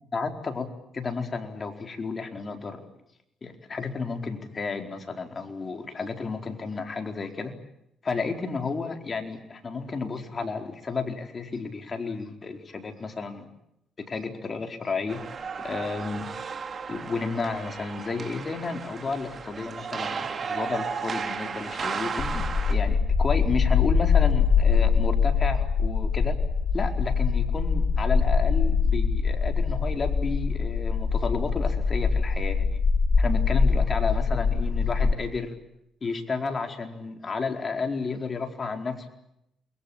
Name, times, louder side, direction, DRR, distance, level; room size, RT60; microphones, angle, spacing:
voice 1, 0.1-0.7 0.9-2.8 3.4-7.5 8.0-13.5 14.0-15.2 15.6-16.3 16.9-26.4 26.7-32.8 33.2-35.5 36.0-39.1, left 4 dB, 35° left, 5 dB, 4.6 m, -32 dB
sound 1, 15.1-22.7, right 5 dB, 45° right, 3.9 m, -34 dB
sound 2, 22.2-35.1, left 5 dB, 55° left, 2.8 m, -23 dB
29.0 x 22.0 x 8.9 m, 0.80 s
cardioid pair, 90°, 0 cm